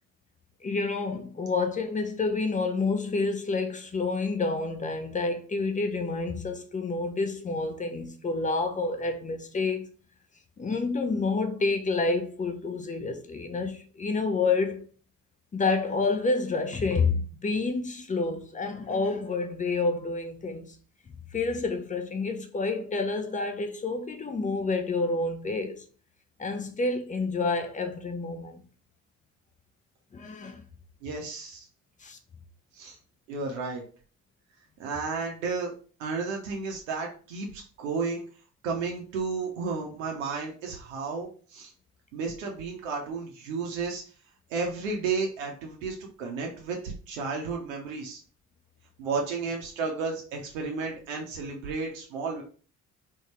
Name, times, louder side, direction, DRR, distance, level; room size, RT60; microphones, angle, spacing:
voice 1, 0.6-9.8 10.6-14.9 15.5-20.8 21.3-25.8 26.4-28.6 30.1-30.6 32.0-32.2, left 3 dB, 20° left, 0.6 m, -29 dB
voice 2, 31.0-31.7 32.7-33.0 33.3-33.8 34.8-35.7 36.0-38.2 38.6-41.7 42.1-44.0 44.5-48.2 49.0-52.4, right 4 dB, 70° right, 0.7 m, -32 dB
3.6 x 2.2 x 2.9 m
figure-of-eight pair, 45°, 40 cm